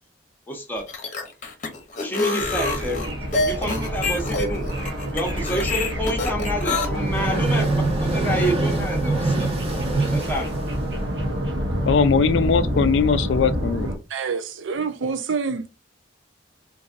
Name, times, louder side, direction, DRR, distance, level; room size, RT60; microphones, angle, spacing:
voice 1, 0.5-0.9 2.0-3.1 3.4-4.7 5.1-9.5 10.1-10.6, equal, 10° left, 0.8 m, -28 dB
sound 1, 0.8-6.9, left 3 dB, 40° left, 0.8 m, -27 dB
sound 2, 2.4-14.0, equal, 60° right, 1.0 m, -28 dB
sound 3, 6.8-11.4, right 2 dB, 30° right, 1.0 m, -25 dB
voice 2, 11.8-13.9, left 5 dB, 70° left, 0.3 m, -20 dB
voice 3, 14.1-15.8, right 5 dB, 75° right, 0.5 m, -27 dB
3.9 x 2.6 x 2.5 m
head